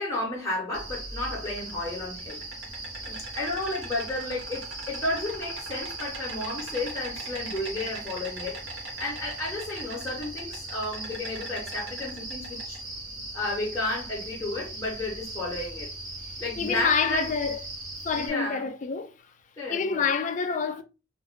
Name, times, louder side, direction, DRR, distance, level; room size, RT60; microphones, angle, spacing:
voice 1, 0.0-2.4 3.0-12.8 13.3-15.9 16.4-17.3 18.1-18.7 19.6-20.1, left 2 dB, 15° left, 0.9 m, -32 dB
Insect, 0.7-18.3, right 2 dB, 65° right, 1.1 m, -38 dB
voice 2, 16.6-17.6 18.0-19.1 19.7-20.8, left 5 dB, 35° left, 0.3 m, -27 dB
2.5 x 2.4 x 3.4 m
head